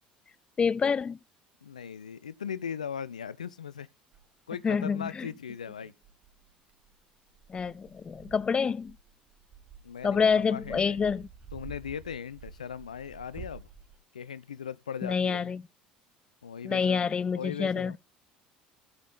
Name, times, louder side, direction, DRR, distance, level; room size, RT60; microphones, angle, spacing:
voice 1, 0.6-1.2 4.6-5.3 7.5-8.9 10.0-11.3 15.0-15.6 16.6-18.0, left 6 dB, 25° left, 0.4 m, -27 dB
voice 2, 1.6-3.9 4.5-5.9 9.8-11.0 11.5-13.7 14.1-15.5 16.4-18.0, left 7 dB, 80° left, 0.5 m, -39 dB
Dog, 4.1-4.3 5.0-5.1 6.0-14.0, right 7 dB, 45° right, 3.2 m, -50 dB
14.5 x 5.5 x 4.2 m
figure-of-eight pair, 60°, 4 cm